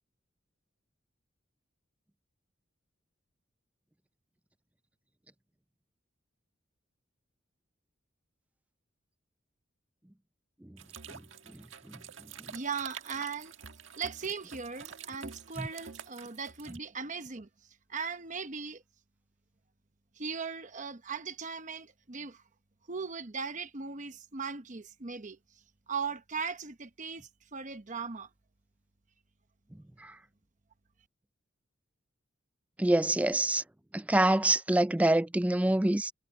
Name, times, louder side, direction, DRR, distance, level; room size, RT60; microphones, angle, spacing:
sound 1, 10.8-16.8, right 7 dB, 75° right, 1.5 m, -48 dB
voice 1, 11.5-12.0 15.6-15.7 30.0-30.2 32.8-33.6 33.9-36.1, right 1 dB, 5° right, 0.4 m, -26 dB
voice 2, 12.5-13.5 14.0-17.5 17.9-18.8 20.2-22.4 22.9-25.4 25.9-28.3, right 5 dB, 40° right, 1.0 m, -38 dB
head